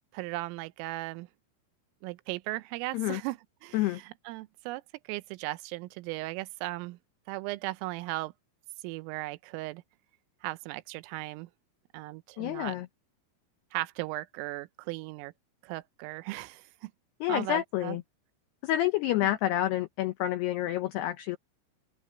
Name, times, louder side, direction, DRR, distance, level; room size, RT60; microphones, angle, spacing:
voice 1, 0.1-1.3 2.0-4.8 5.1-7.0 7.3-8.3 8.8-9.8 10.4-11.5 11.9-12.8 13.7-15.3 15.6-16.9 17.3-18.0 19.2-19.3, right 20 dB, 90° right, 3.3 m, -37 dB
voice 2, 12.4-12.9 17.2-18.0 18.6-21.4, left 14 dB, 85° left, 2.3 m, -28 dB
open air
omnidirectional pair, 5.8 m